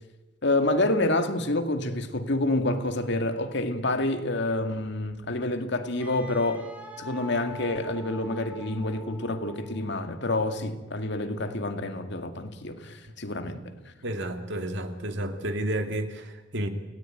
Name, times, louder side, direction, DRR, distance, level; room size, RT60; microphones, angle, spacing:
voice 1, 0.4-6.7 7.0-13.6, left 2 dB, 60° left, 2.2 m, -28 dB
Wind instrument woodwind instrument, 6.0-10.1, equal, 5° right, 4.4 m, -45 dB
voice 2, 14.0-16.7, right 1 dB, 60° right, 2.5 m, -31 dB
29.0 x 18.0 x 9.2 m
head